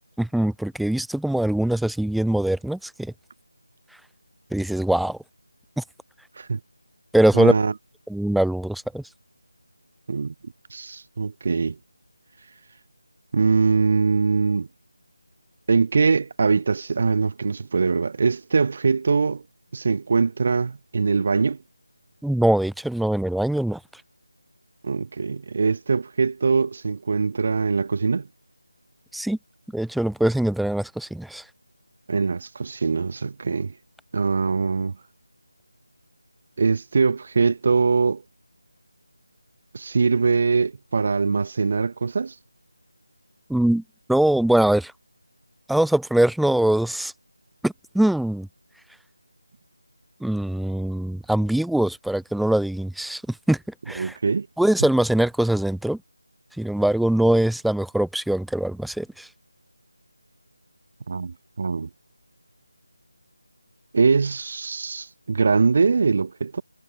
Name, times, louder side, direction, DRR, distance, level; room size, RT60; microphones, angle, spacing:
voice 1, 0.2-3.1 4.5-5.2 5.8-5.9 7.1-7.5 8.1-9.0 22.2-23.8 29.1-29.4 29.7-31.4 43.5-43.8 44.1-44.9 45.7-47.1 47.6-48.5 50.2-53.2 53.5-53.6 53.9-54.2 54.6-56.0 56.6-59.3, right 1 dB, ahead, 0.6 m, -22 dB
voice 2, 7.3-7.7 10.1-10.3 10.7-11.8 13.3-14.7 15.7-19.4 19.7-21.6 24.8-28.3 32.1-33.7 34.1-35.0 36.6-38.2 39.7-42.3 54.0-54.5 61.1-61.9 63.9-66.6, right 4 dB, 40° right, 2.2 m, -22 dB
figure-of-eight pair, 165°, 0 cm